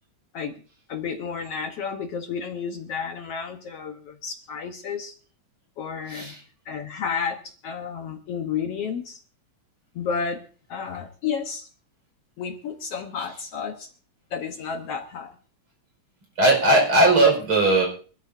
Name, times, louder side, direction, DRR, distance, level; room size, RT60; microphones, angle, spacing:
voice 1, 0.9-5.2 5.8-6.3 6.7-9.2 10.0-10.4 10.7-11.7 12.4-13.9 14.3-15.3, left 6 dB, 65° left, 4 dB, 1.9 m, -31 dB
voice 2, 6.1-6.4 16.4-17.9, right 2 dB, 45° right, 0 dB, 6.1 m, -18 dB
24.5 x 13.0 x 2.7 m, 0.39 s
omnidirectional pair, 3.3 m